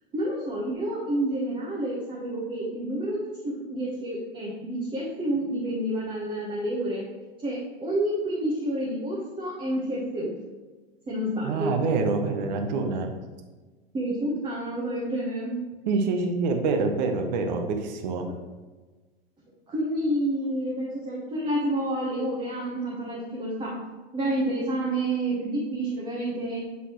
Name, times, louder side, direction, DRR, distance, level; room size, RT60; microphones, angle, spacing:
voice 1, 0.1-7.0 7.4-10.3 11.1-11.7 13.9-15.6 19.7-23.8 24.1-26.6, right 1 dB, 15° right, -5 dB, 1.1 m, -29 dB
voice 2, 11.4-13.1 15.9-18.3, right 4 dB, 45° right, 5 dB, 0.9 m, -26 dB
8.2 x 3.9 x 3.1 m, 1.3 s
figure-of-eight pair, 95°, 30 cm